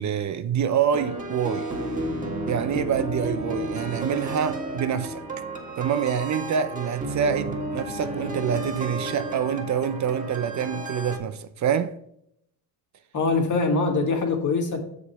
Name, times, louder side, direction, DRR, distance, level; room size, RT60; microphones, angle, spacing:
voice 1, 0.0-1.7 2.5-5.2 5.8-11.9, right 8 dB, 50° right, 0.6 m, -26 dB
sound 1, 0.9-11.2, right 1 dB, 20° right, 1.9 m, -32 dB
voice 2, 13.1-14.8, left 3 dB, 50° left, 2.0 m, -23 dB
6.8 x 5.0 x 5.5 m
cardioid pair, 100°, 38 cm